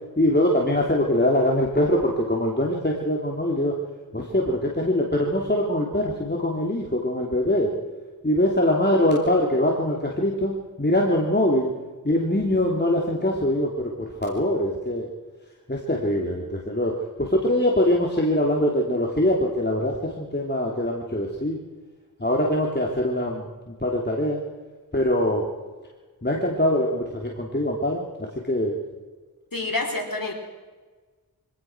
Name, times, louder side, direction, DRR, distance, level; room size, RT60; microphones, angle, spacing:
voice 1, 0.2-3.7 4.1-7.7 8.2-10.5 10.8-11.7 12.0-15.1 15.7-16.9 17.2-21.6 22.2-24.4 24.9-25.5 26.2-28.0 28.4-28.8, left 1 dB, 30° left, -1 dB, 3.2 m, -23 dB
voice 2, 29.5-30.3, left 2 dB, 65° left, 2 dB, 4.5 m, -27 dB
24.5 x 17.5 x 6.3 m, 1.3 s
wide cardioid pair, 45°, 36 cm